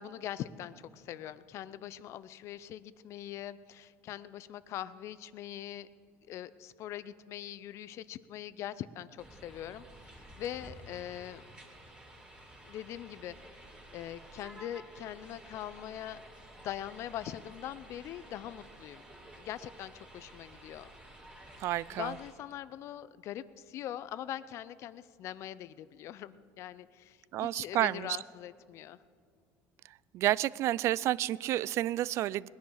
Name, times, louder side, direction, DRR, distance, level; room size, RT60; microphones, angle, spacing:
voice 1, 0.0-5.9 6.2-11.5 12.6-13.3 13.9-16.2 16.6-19.0 19.4-20.9 21.9-29.0, left 11 dB, 55° left, 16 dB, 0.6 m, -42 dB
sound 1, 9.2-22.3, right 1 dB, 15° right, 2.9 m, -52 dB
voice 2, 21.6-22.1 27.3-28.2 30.1-32.5, right 14 dB, 50° right, 22 dB, 0.3 m, -30 dB
19.5 x 10.5 x 6.4 m, 2.3 s
cardioid pair, 125°, 6 cm